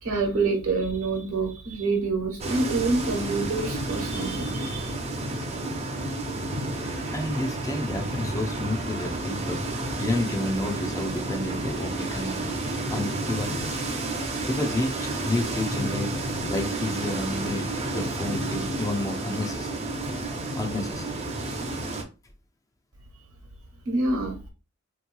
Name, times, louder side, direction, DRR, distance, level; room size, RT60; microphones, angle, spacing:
voice 1, 0.0-5.0 23.8-24.5, right 3 dB, 80° right, 1.2 m, -27 dB
sound 1, 2.4-22.0, right 2 dB, 30° right, 0.6 m, -31 dB
voice 2, 7.1-9.6 10.0-12.5 12.9-13.7 14.5-16.1 16.5-17.7 17.9-19.7 20.6-21.0, left 1 dB, 15° left, 0.5 m, -30 dB
3.4 x 3.0 x 2.2 m
head